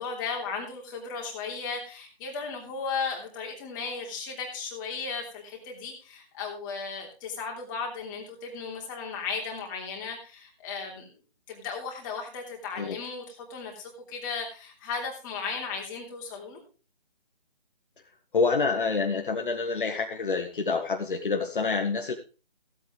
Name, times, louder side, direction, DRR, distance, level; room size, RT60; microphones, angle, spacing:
voice 1, 0.0-11.1 11.5-16.6, left 5 dB, 20° left, 0 dB, 3.2 m, -35 dB
voice 2, 18.3-22.1, left 4 dB, 55° left, 4 dB, 1.7 m, -27 dB
16.5 x 8.5 x 3.4 m, 0.34 s
figure-of-eight pair, 155°, 31 cm